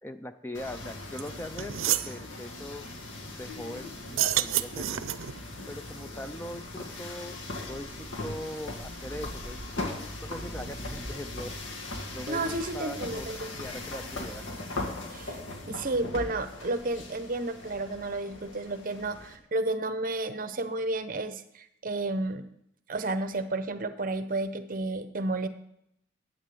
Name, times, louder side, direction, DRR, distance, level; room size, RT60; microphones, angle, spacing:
voice 1, 0.0-2.8 3.3-5.0 5.7-7.4 7.7-7.9 8.2-11.5 12.1-14.5, left 1 dB, 10° left, 9 dB, 0.4 m, -41 dB
sound 1, 0.5-19.4, left 2 dB, 80° left, 2.1 m, -39 dB
metallic lid, 1.2-1.3 1.6-2.1 4.0-5.4, right 12 dB, 85° right, 0.5 m, -28 dB
voice 2, 12.3-13.6 15.1-15.4 15.7-22.4 22.9-25.5, right 2 dB, 45° right, 10 dB, 0.8 m, -32 dB
10.5 x 9.0 x 7.0 m, 0.77 s
head